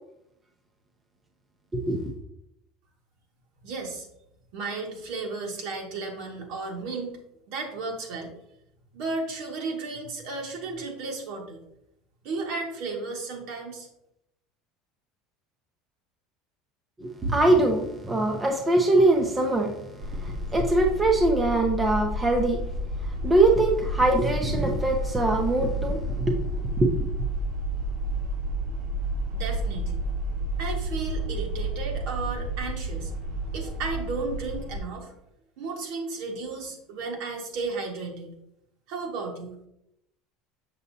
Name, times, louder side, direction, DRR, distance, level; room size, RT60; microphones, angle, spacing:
voice 1, 1.7-2.0 17.0-22.6 23.0-27.0, right 2 dB, 15° right, 2 dB, 0.7 m, -23 dB
voice 2, 3.6-4.1 4.5-7.1 7.5-8.3 8.9-11.6 12.2-13.9 29.3-30.0 30.6-33.1 33.5-35.1 35.6-38.3 38.9-39.5, right 3 dB, 60° right, 1 dB, 1.7 m, -34 dB
sound 1, 20.0-34.8, right 1 dB, 80° right, 2.3 m, -31 dB
7.1 x 6.7 x 2.7 m, 0.78 s
cardioid pair, 165°, 0 cm